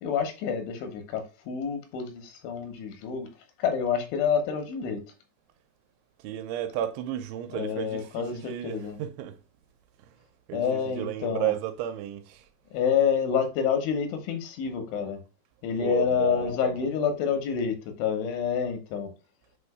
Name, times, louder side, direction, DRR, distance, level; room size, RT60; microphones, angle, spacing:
voice 1, 0.0-3.3 3.6-5.0 7.5-9.0 10.5-11.5 12.7-15.2 15.6-19.1, left 7 dB, 85° left, 3.5 m, -28 dB
voice 2, 6.2-9.4 10.1-10.2 10.5-12.5 15.8-16.9, right 12 dB, 85° right, 3.0 m, -33 dB
7.4 x 2.6 x 4.8 m
omnidirectional pair, 5.3 m